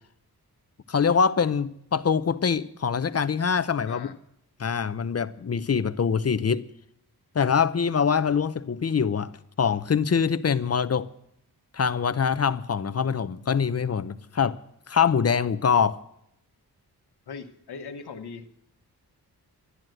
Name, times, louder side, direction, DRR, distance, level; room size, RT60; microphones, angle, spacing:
voice 1, 0.9-4.1 4.6-6.6 7.3-9.3 9.6-11.1 11.7-14.6 14.9-16.0, left 6 dB, 40° left, 0.7 m, -24 dB
voice 2, 3.8-4.1 17.3-18.5, left 5 dB, 80° left, 1.2 m, -39 dB
12.5 x 10.5 x 7.8 m
wide cardioid pair, 85°, 39 cm